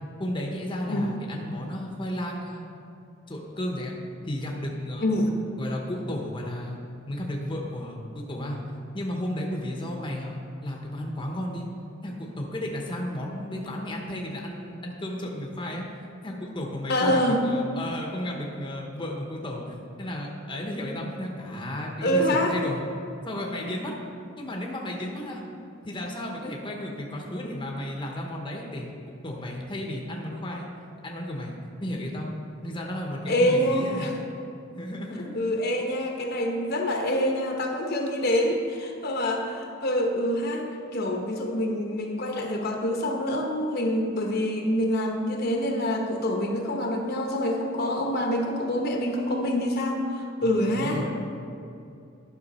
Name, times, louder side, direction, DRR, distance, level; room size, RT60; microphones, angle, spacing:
voice 1, 0.2-2.6 3.3-3.9 4.2-5.1 5.6-6.8 7.1-11.7 12.0-15.8 16.2-22.8 23.3-23.9 24.4-25.4 25.8-28.9 29.2-30.7 31.0-31.5 31.8-32.3 32.6-34.1 34.7-35.4 50.4-51.1, left 1 dB, 25° left, 0 dB, 0.8 m, -33 dB
voice 2, 5.0-5.3 16.9-17.4 22.0-22.6 33.3-34.1 35.3-51.0, left 1 dB, 50° left, 2 dB, 0.9 m, -26 dB
11.0 x 5.7 x 4.2 m, 2.6 s
head